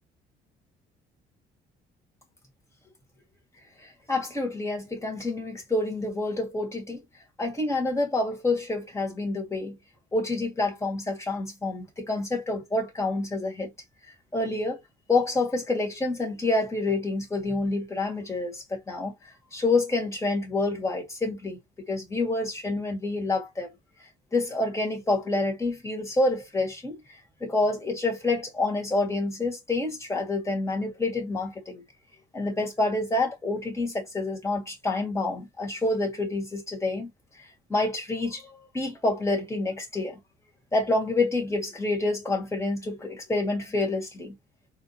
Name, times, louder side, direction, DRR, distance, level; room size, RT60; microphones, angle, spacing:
voice 1, 3.8-7.0 7.4-9.8 10.1-13.7 14.3-14.8 15.1-19.1 19.5-21.6 21.9-23.7 24.3-27.0 27.4-31.8 32.3-37.1 37.7-40.2 40.7-44.3, left 2 dB, 15° left, 1.8 m, -28 dB
4.1 x 2.9 x 2.8 m
cardioid pair, 115°, 18 cm